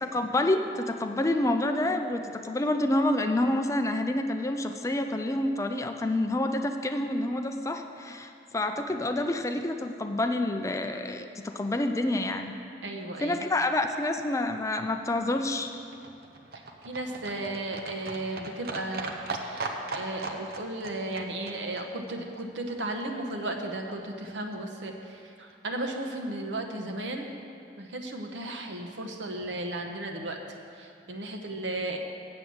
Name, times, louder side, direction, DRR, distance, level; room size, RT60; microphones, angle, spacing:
voice 1, 0.0-12.5 13.2-15.7, left 1 dB, 15° left, 6 dB, 0.4 m, -28 dB
voice 2, 12.8-13.4 16.8-27.3 27.8-30.4 30.8-32.0, right 2 dB, 85° right, 3 dB, 1.0 m, -35 dB
Livestock farm animals working animals, 14.8-23.0 23.3-23.4 23.6-23.7 23.9-24.0 24.2-24.3 24.5-24.6 24.9-25.0 25.2-25.3 25.5-25.6, right 3 dB, 55° right, 0.7 m, -39 dB
7.8 x 7.6 x 7.0 m, 2.5 s
head